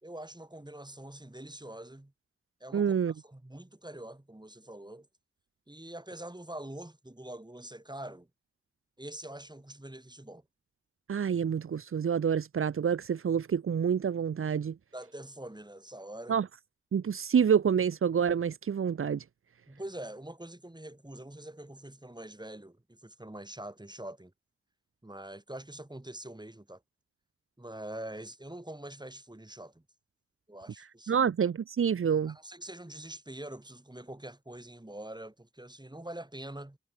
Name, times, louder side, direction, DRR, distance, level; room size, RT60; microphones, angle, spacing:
voice 1, 0.0-2.1 2.6-5.1 5.7-8.3 9.0-10.4 14.9-16.4 19.7-24.3 25.0-26.8 27.6-29.8 30.5-31.3 32.3-36.8, right 1 dB, 20° right, 5.1 m, -44 dB
voice 2, 2.7-3.1 11.1-14.7 16.3-16.5 16.9-19.2 31.1-32.3, right 7 dB, 80° right, 0.6 m, -27 dB
cardioid pair, 40°, 21 cm